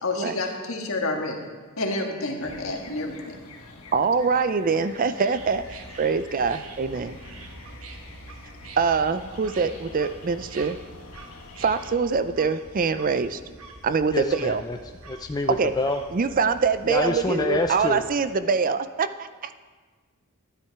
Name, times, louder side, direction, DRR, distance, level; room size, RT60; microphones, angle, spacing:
voice 1, 0.0-1.4 1.8-3.4, left 2 dB, 65° left, 1 dB, 1.7 m, -29 dB
sound 1, 2.4-11.9, left 3 dB, 90° left, 1.5 m, -47 dB
voice 2, 3.9-7.2 8.8-10.8 11.6-13.4 13.8-14.6 15.6-15.7 16.1-19.5, right 5 dB, 40° right, 12 dB, 0.4 m, -24 dB
sound 2, 5.3-18.2, right 2 dB, 75° right, 1.3 m, -45 dB
voice 3, 14.1-14.8 15.1-16.0 16.9-18.0, left 2 dB, 20° left, 5 dB, 0.4 m, -26 dB
12.5 x 10.0 x 4.7 m, 1.4 s
head